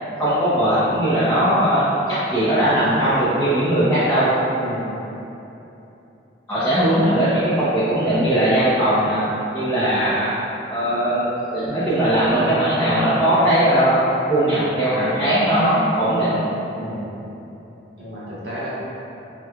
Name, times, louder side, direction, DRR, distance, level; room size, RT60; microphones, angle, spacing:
voice 1, 0.2-4.3 6.5-9.2 9.5-10.3 10.7-11.3 11.5-16.4, right 1 dB, 10° left, -14 dB, 0.5 m, -19 dB
voice 2, 4.6-4.9 9.7-9.9 14.4-14.6 16.7-17.0 18.0-18.7, equal, 60° right, -10 dB, 1.0 m, -32 dB
4.3 x 2.2 x 2.4 m, 2.9 s
head